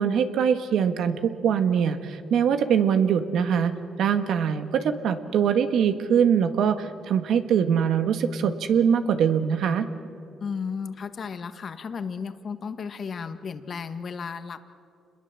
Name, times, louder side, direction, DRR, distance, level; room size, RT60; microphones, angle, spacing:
voice 1, 0.0-3.7 4.0-9.9, right 7 dB, 75° right, 9 dB, 1.6 m, -23 dB
voice 2, 10.4-14.7, left 6 dB, 50° left, 9 dB, 1.6 m, -34 dB
28.0 x 21.0 x 7.5 m, 2.4 s
cardioid pair, 90°, 0 cm